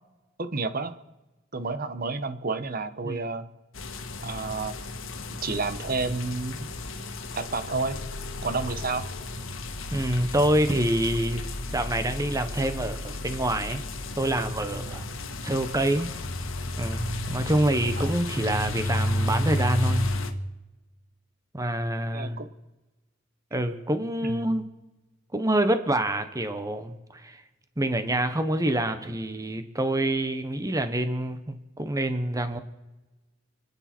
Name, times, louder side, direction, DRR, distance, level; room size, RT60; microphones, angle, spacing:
voice 1, 0.4-0.9 1.5-3.5 4.2-4.8 5.4-6.7 7.3-8.0 8.4-9.1 18.0-18.1 22.1-22.5 24.3-24.6, right 3 dB, 45° right, 11 dB, 1.1 m, -30 dB
sound 1, 3.7-20.3, left 1 dB, 85° left, 1.5 m, -32 dB
voice 2, 9.9-11.5 11.7-13.8 14.2-15.0 15.4-16.1 16.8-20.1 21.5-22.4 23.5-24.6 25.3-27.4 27.8-32.6, right 1 dB, 15° right, 9 dB, 1.1 m, -26 dB
29.5 x 9.9 x 4.5 m, 1.1 s
head